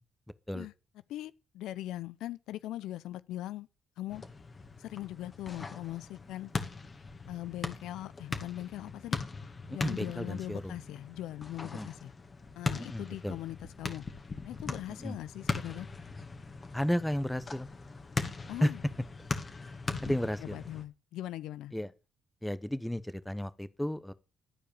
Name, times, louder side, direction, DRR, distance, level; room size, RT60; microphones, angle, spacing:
voice 1, 1.1-3.7 4.0-4.2 4.8-6.5 7.3-9.2 9.7-12.1 12.6-14.0 14.4-15.9 18.5-18.8 19.9-21.7, left 14 dB, 90° left, 0.5 m, -40 dB
sound 1, 4.1-20.8, left 4 dB, 35° left, 2.0 m, -40 dB
voice 2, 9.7-10.8 11.7-11.9 12.8-13.4 14.9-15.1 16.7-17.7 18.6-18.7 19.6-19.7 20.0-20.6 21.7-21.9 22.4-24.1, equal, 5° left, 0.9 m, -33 dB
13.0 x 4.9 x 8.7 m
cardioid pair, 90°, 0 cm